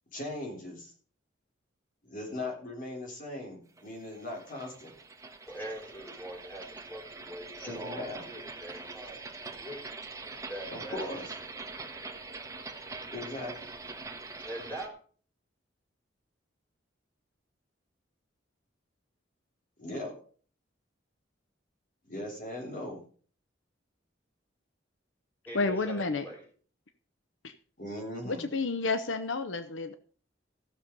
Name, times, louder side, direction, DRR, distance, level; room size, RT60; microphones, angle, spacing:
voice 1, 0.1-0.9 2.0-4.9 7.6-8.3 10.7-11.3 13.1-13.7 19.8-20.1 22.0-23.0 27.8-28.5, left 1 dB, 45° left, 0 dB, 4.1 m, -39 dB
sound 1, 3.8-14.9, right 3 dB, 15° right, 1.3 m, -44 dB
voice 2, 5.5-9.2 9.5-9.8 10.4-11.1 14.4-14.9 25.5-26.4, right 1 dB, 10° left, -1 dB, 5.1 m, -43 dB
voice 3, 25.5-26.3 27.4-27.5 28.2-29.9, left 3 dB, 85° left, 10 dB, 0.8 m, -30 dB
15.0 x 6.9 x 5.4 m, 0.43 s
head